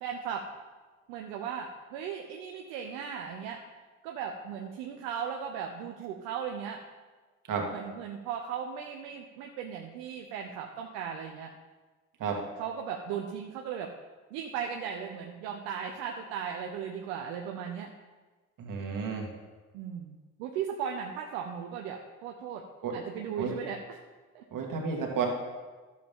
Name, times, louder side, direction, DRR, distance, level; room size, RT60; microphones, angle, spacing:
voice 1, 0.0-0.5 1.1-3.6 4.0-6.8 7.7-11.5 12.6-13.9 14.3-17.9 19.7-22.6 22.9-24.0 24.3-24.4, right 7 dB, 80° right, 2 dB, 0.8 m, -37 dB
voice 2, 18.6-19.3 22.8-22.9 23.4-23.5 24.5-25.3, right 6 dB, 60° right, 1 dB, 2.1 m, -31 dB
11.5 x 7.3 x 3.7 m, 1.3 s
hypercardioid pair, 50°, 36 cm